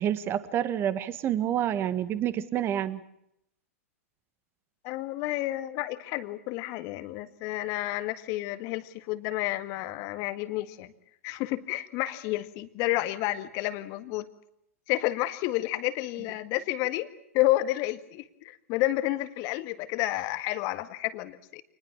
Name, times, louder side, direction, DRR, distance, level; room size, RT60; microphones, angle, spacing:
voice 1, 0.0-3.0, right 10 dB, 30° right, 14 dB, 1.8 m, -28 dB
voice 2, 4.8-10.9 11.2-14.3 14.9-17.1 17.3-21.6, left 16 dB, 40° left, 11 dB, 1.9 m, -30 dB
27.0 x 20.5 x 7.4 m, 0.76 s
hypercardioid pair, 110°, 8 cm